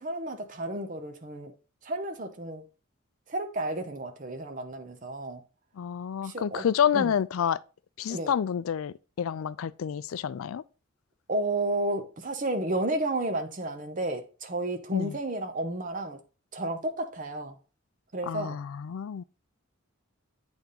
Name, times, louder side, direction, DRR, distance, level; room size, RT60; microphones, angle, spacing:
voice 1, 0.0-1.5 1.8-2.6 3.3-5.4 6.2-6.6 6.9-7.1 8.1-8.3 11.3-16.2 16.5-17.5 18.1-18.6, right 1 dB, 40° right, 0.8 m, -32 dB
voice 2, 5.8-7.6 8.0-10.6 14.9-15.2 18.2-19.2, left 8 dB, 80° left, 0.4 m, -29 dB
8.3 x 3.5 x 3.9 m
head